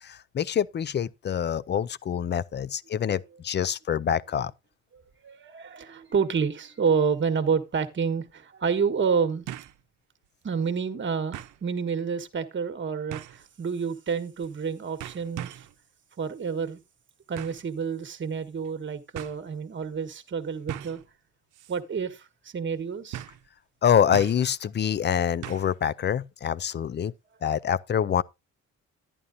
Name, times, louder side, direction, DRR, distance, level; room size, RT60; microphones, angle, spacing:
voice 1, 0.0-4.5 23.8-27.1 27.4-28.2, left 8 dB, 35° left, 0.5 m, -26 dB
voice 2, 4.9-9.5 10.4-15.7 16.2-16.8 17.3-21.0 21.7-23.2, right 6 dB, 40° right, 1.3 m, -29 dB
sound 1, 7.6-7.7 9.5-9.8 10.2-10.3 11.3-11.6 13.1-13.5 14.4-14.7 15.0-15.7 17.4-17.7 18.6-18.7 19.1-19.4 20.7-21.1 21.5-21.8 22.1-22.2 23.1-23.5 24.1-24.5 25.4-25.8 26.1-26.2, right 12 dB, 85° right, 0.7 m, -39 dB
11.0 x 10.5 x 2.6 m
cardioid pair, 90°, 30 cm